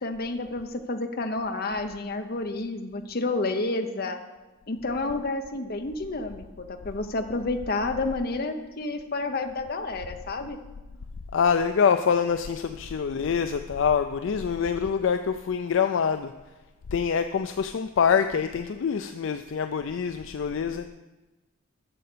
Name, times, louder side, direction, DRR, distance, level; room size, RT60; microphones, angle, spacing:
voice 1, 0.0-4.2 4.7-10.6, left 2 dB, 45° left, 7 dB, 0.8 m, -30 dB
voice 2, 11.3-16.3 16.9-20.9, left 6 dB, 60° left, 8 dB, 0.4 m, -25 dB
8.6 x 6.6 x 6.7 m, 1.1 s
head